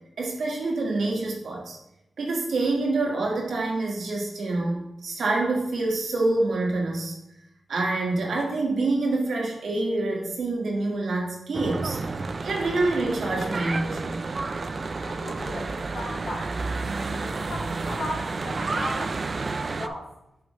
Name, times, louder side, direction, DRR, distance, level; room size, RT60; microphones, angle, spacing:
voice 1, 0.2-1.8 2.2-7.1 7.7-12.0 12.4-14.2, right 2 dB, 80° right, -1 dB, 1.7 m, -26 dB
Church bell / Traffic noise roadway noise, 11.5-19.9, right 3 dB, 45° right, 0.4 m, -30 dB
voice 2, 15.0-16.5 17.1-20.1, left 1 dB, 85° left, -4 dB, 2.4 m, -37 dB
7.8 x 5.0 x 3.1 m, 0.87 s
wide cardioid pair, 85°, 0 cm